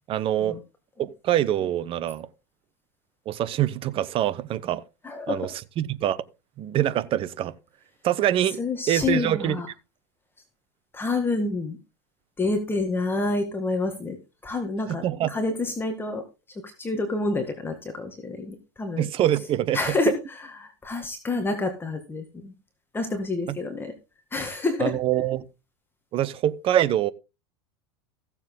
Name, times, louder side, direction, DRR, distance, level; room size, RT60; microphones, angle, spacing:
voice 1, 0.1-0.6 1.2-2.3 3.3-4.8 5.3-5.5 5.8-6.2 6.6-7.5 8.0-8.6 8.9-9.6 15.0-15.3 19.0-19.8 24.8-25.4 26.1-27.1, right 12 dB, 40° right, 1.1 m, -24 dB
voice 2, 5.0-5.5 8.6-9.7 10.9-11.8 12.4-19.1 19.7-22.5 22.9-23.9 24.3-25.0, left 3 dB, 15° left, 1.8 m, -28 dB
15.5 x 7.3 x 3.8 m
hypercardioid pair, 110°, 14 cm